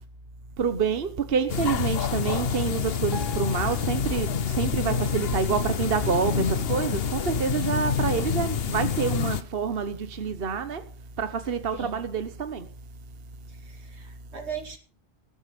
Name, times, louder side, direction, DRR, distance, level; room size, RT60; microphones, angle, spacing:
voice 1, 0.6-10.8 11.2-12.7, right 6 dB, 60° right, 1.3 m, -27 dB
sound 1, 1.5-9.4, left 7 dB, 65° left, 1.1 m, -27 dB
Piano, 3.1-6.2 6.7-6.9 7.2-7.3 8.0-8.1 8.7-8.8, left 3 dB, ahead, 2.7 m, -46 dB
voice 2, 8.1-8.5 11.7-12.0 13.5-14.8, right 6 dB, 85° right, 3.0 m, -39 dB
20.5 x 8.0 x 5.2 m
omnidirectional pair, 1.1 m